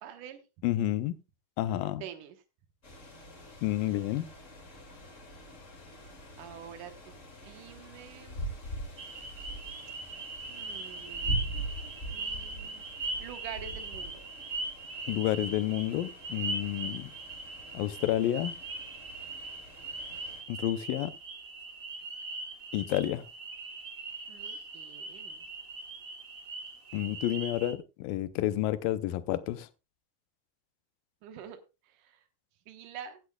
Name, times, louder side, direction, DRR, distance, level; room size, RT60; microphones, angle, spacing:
voice 1, 0.0-0.4 2.0-2.4 6.4-7.2 7.4-8.4 10.5-14.2 24.3-25.5 31.2-32.2 32.7-33.2, right 9 dB, 70° right, 2.7 m, -47 dB
voice 2, 0.6-1.2 1.6-2.0 3.6-4.3 15.1-17.1 17.7-18.6 20.5-21.1 22.7-23.3 26.9-29.7, left 14 dB, 90° left, 2.5 m, -30 dB
sound 1, 2.8-20.4, right 1 dB, 25° left, 2.3 m, -43 dB
sound 2, 9.0-27.7, right 3 dB, 55° right, 0.9 m, -40 dB
16.0 x 10.5 x 2.3 m
omnidirectional pair, 3.9 m